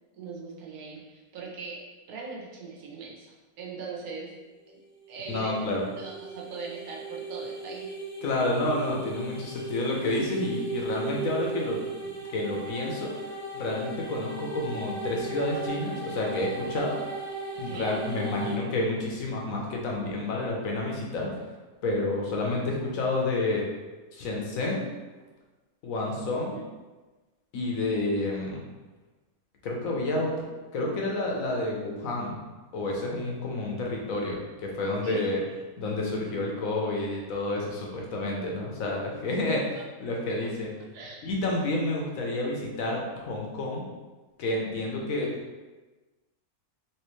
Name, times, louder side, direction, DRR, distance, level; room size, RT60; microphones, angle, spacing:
voice 1, 0.1-1.8 2.1-4.3 4.7-4.8 5.1-7.9 17.5-18.0 26.5-26.7 35.0-35.2 38.8-38.9 40.1-40.5 40.8-41.2, right 4 dB, 75° right, -3 dB, 1.3 m, -41 dB
sound 1, 5.0-18.6, right 3 dB, 30° right, 1.0 m, -37 dB
voice 2, 5.3-5.9 8.2-13.1 13.5-16.9 17.6-21.3 21.8-23.6 24.1-24.8 25.8-26.6 27.5-28.6 29.6-30.3 30.7-32.4 32.7-35.4 35.8-39.6 40.0-40.7 41.2-43.9 44.4-45.3, left 2 dB, 70° left, -1 dB, 1.1 m, -29 dB
3.3 x 3.0 x 3.0 m, 1.2 s
omnidirectional pair, 1.6 m